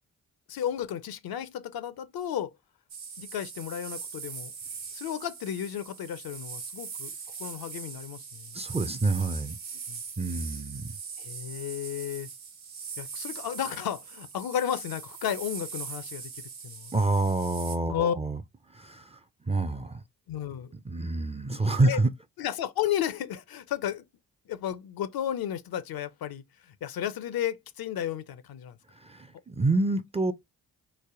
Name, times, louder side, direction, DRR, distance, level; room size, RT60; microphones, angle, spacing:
voice 1, 0.5-2.5 3.2-4.5 4.9-7.1 7.4-8.6 9.9-10.0 11.2-12.3 13.0-16.3 16.6-16.9 17.9-18.1 20.3-20.7 21.8-22.0 22.4-24.0 24.5-28.8, left 10 dB, 60° left, 0.6 m, -33 dB
sound 1, 2.9-17.8, right 6 dB, 60° right, 1.1 m, -41 dB
voice 2, 8.5-9.6 10.2-11.0 16.9-18.4 18.7-19.2 19.4-20.0 20.8-22.1 28.9-30.3, right 2 dB, 15° right, 0.5 m, -27 dB
3.3 x 2.1 x 3.6 m
hypercardioid pair, 40°, 41 cm